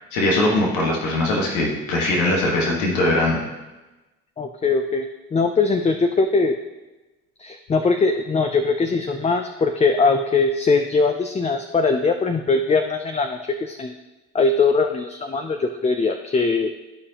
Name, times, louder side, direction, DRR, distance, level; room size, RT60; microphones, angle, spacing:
voice 1, 0.0-3.4, left 1 dB, 80° left, -2 dB, 1.6 m, -21 dB
voice 2, 4.4-6.5 7.4-13.9 14.3-16.7, left 4 dB, 20° left, 6 dB, 0.5 m, -21 dB
14.0 x 4.8 x 2.9 m, 1.1 s
supercardioid pair, 75°, 30 cm